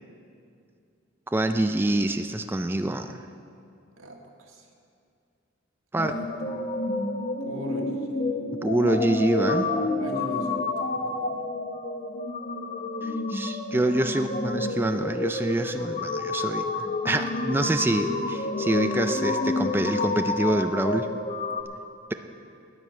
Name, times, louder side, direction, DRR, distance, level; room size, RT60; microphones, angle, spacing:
voice 1, 1.3-3.2 5.9-6.1 8.6-9.7 13.0-21.1, right 1 dB, 10° right, 7 dB, 0.3 m, -26 dB
voice 2, 4.0-4.7 6.0-6.7 7.4-8.3 10.0-11.4 14.1-14.2, right 1 dB, 85° right, 0 dB, 1.8 m, -40 dB
sound 1, 6.0-21.6, left 2 dB, 40° left, 0.8 m, -29 dB
10.0 x 9.5 x 8.1 m, 2.5 s
head